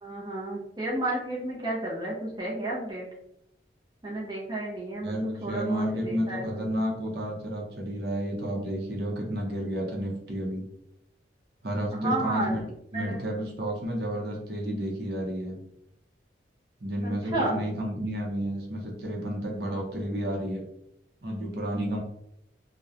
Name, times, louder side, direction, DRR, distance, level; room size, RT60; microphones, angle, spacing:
voice 1, 0.0-3.1 4.0-5.1 5.4-6.6 11.9-12.6 12.9-13.2 17.0-17.6, right 2 dB, 25° right, -5 dB, 0.5 m, -31 dB
voice 2, 5.0-10.6 11.6-12.6 12.9-15.6 16.8-20.6 21.2-22.0, equal, 60° right, -1 dB, 0.7 m, -31 dB
2.9 x 2.1 x 2.3 m, 0.77 s
head